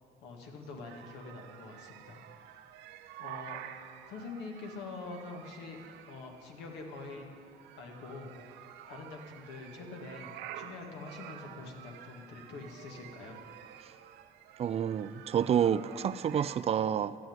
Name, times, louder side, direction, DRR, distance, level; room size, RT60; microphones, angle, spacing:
voice 1, 0.2-2.2 3.2-3.6 4.1-5.8 6.0-7.3 7.8-8.3 8.9-13.4, left 3 dB, 85° left, 1.9 m, -45 dB
sound 1, 0.8-16.6, right 11 dB, 90° right, 0.7 m, -49 dB
voice 2, 14.6-17.2, right 9 dB, 40° right, 0.4 m, -29 dB
13.0 x 7.7 x 9.4 m
cardioid pair, 110°, 17 cm